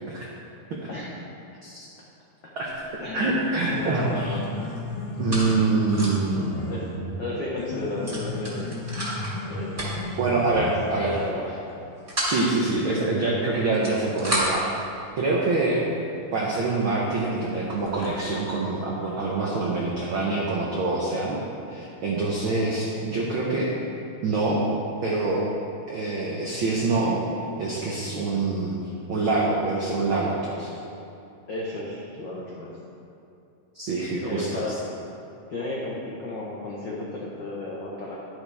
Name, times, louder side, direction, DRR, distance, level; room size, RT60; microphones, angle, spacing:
voice 1, 0.9-1.2 3.0-4.4 6.7-6.9 7.2-8.8 9.5-10.1 10.4-10.7 11.0-11.6 31.5-32.7 34.2-34.8 35.5-38.2, left 2 dB, 80° left, -5 dB, 1.0 m, -33 dB
sound 1, 2.6-2.9 3.2-4.0 4.3-6.4 6.7-6.8 7.1-7.3 8.0-9.4 9.7-10.2 11.0-11.3 11.7-12.5 13.5-14.7 15.5-15.6 16.2-16.3 16.8-16.9 17.1-18.1, equal, 15° right, 2.0 m, -32 dB
voice 2, 3.1-4.4 5.2-7.1 10.2-11.2 12.2-14.7 15.2-15.8 16.3-21.4 21.7-23.7 24.2-24.6 25.0-25.5 25.9-27.2 27.6-28.8 29.1-30.8 33.7-34.7, right 3 dB, 75° right, -4 dB, 1.1 m, -25 dB
Piano, 3.4-11.4, left 2 dB, 65° left, 1.5 m, -34 dB
11.0 x 10.5 x 3.5 m, 2.7 s
omnidirectional pair, 3.8 m